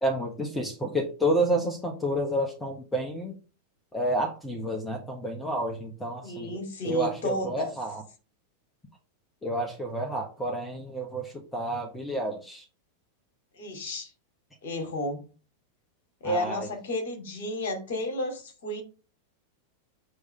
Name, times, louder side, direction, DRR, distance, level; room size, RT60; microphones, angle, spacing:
voice 1, 0.0-3.3 3.9-6.5 6.8-8.0 9.4-12.6 16.2-16.7, right 1 dB, 10° left, 1.3 m, -30 dB
voice 2, 6.2-7.7 13.5-14.1 14.6-15.2 16.2-18.8, left 1 dB, 55° left, 2.6 m, -32 dB
7.7 x 3.3 x 5.3 m
figure-of-eight pair, 90°, 0 cm